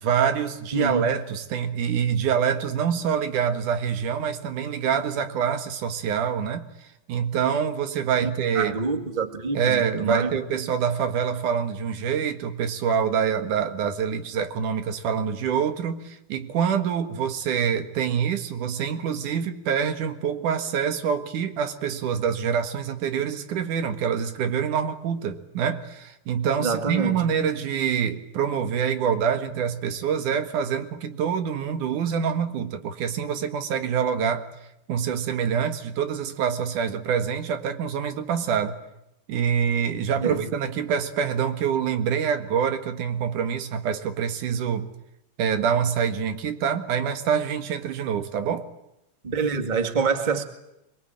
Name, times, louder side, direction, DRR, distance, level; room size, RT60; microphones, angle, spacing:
voice 1, 0.0-8.7 9.5-34.5 34.9-38.8 39.3-44.9 45.4-48.7, right 7 dB, 85° right, 8 dB, 3.2 m, -26 dB
voice 2, 0.7-1.0 8.2-8.3 8.5-10.4 26.6-27.2 40.2-40.5 49.2-50.4, right 5 dB, 20° right, 7 dB, 1.7 m, -26 dB
24.0 x 22.5 x 8.9 m, 0.86 s
omnidirectional pair, 3.5 m